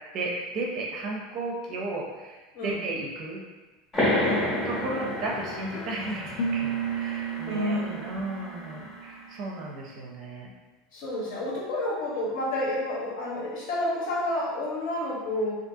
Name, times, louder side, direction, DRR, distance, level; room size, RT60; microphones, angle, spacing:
voice 1, 0.1-3.4 4.6-10.5, right 2 dB, 30° right, -1 dB, 0.5 m, -34 dB
sound 1, 3.9-9.2, left 1 dB, 10° left, 0.8 m, -31 dB
voice 2, 4.2-4.5 7.5-8.1 10.9-15.5, left 1 dB, 55° left, -5 dB, 1.0 m, -30 dB
sound 2, 4.9-5.9 6.3-9.3, right 5 dB, 90° left, 0.5 m, -34 dB
3.5 x 2.6 x 2.6 m, 1.2 s
supercardioid pair, 180°, 0 cm